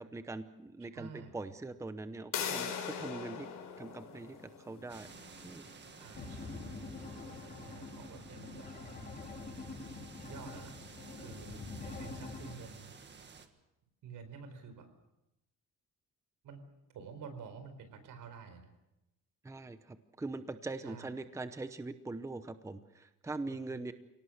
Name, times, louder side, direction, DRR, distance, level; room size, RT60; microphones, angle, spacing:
voice 1, 0.0-3.5 3.8-5.1 5.4-5.7 19.4-23.9, right 2 dB, 10° right, 10 dB, 0.8 m, -42 dB
voice 2, 0.9-1.4 6.0-6.7 7.6-8.7 10.2-10.8 11.2-12.9 14.0-14.9 16.4-16.6 16.9-18.7 20.8-21.1 23.5-23.8, right 6 dB, 80° right, 9 dB, 4.5 m, -49 dB
sound 1, 2.3-7.9, left 7 dB, 80° left, 4.7 m, -42 dB
sound 2, 4.9-13.5, right 5 dB, 35° right, 1.8 m, -54 dB
sound 3, 6.1-12.5, left 3 dB, 30° left, 4.0 m, -45 dB
29.0 x 18.0 x 6.5 m, 0.91 s
cardioid pair, 150°, 32 cm